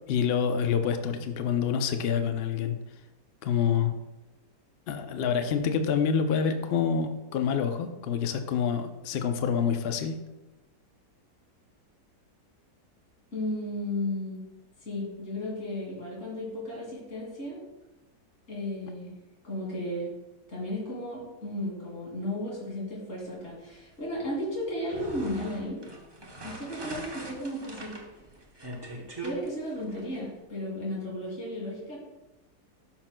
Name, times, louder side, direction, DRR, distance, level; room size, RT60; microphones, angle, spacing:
voice 1, 0.1-2.8 3.4-4.0 4.9-10.2, left 7 dB, 75° left, 7 dB, 0.5 m, -27 dB
voice 2, 13.3-14.4 14.8-17.6 18.5-19.1 19.4-20.1 20.5-25.8 26.4-27.9 29.0-32.0, left 1 dB, 45° left, -5 dB, 2.9 m, -34 dB
sound 1, 24.7-30.2, right 2 dB, 25° right, 0.6 m, -42 dB
12.5 x 5.9 x 2.2 m, 1.0 s
omnidirectional pair, 1.8 m